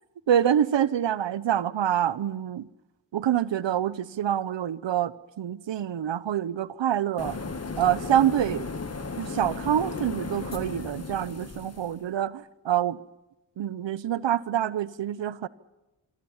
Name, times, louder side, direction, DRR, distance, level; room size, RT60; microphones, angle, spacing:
voice 1, 0.3-2.7 3.1-7.5 7.8-8.6 9.2-13.0 13.6-15.5, right 10 dB, 80° right, 0.9 m, -26 dB
sound 1, 7.2-12.0, left 4 dB, 35° left, 1.8 m, -35 dB
27.0 x 23.0 x 7.3 m
wide cardioid pair, 100°, 44 cm